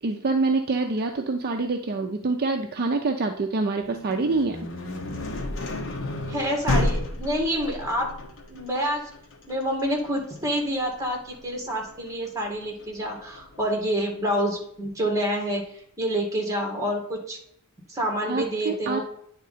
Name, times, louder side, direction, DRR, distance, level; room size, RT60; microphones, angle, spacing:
voice 1, 0.0-4.6 18.3-19.0, right 3 dB, 45° right, 4 dB, 0.5 m, -26 dB
sound 1, 3.8-13.6, left 1 dB, 60° left, 1.1 m, -32 dB
voice 2, 6.3-8.1 8.5-9.1 9.5-15.7 16.0-17.4 17.9-19.0, equal, 15° right, 0 dB, 1.8 m, -27 dB
9.4 x 3.7 x 4.1 m, 0.69 s
head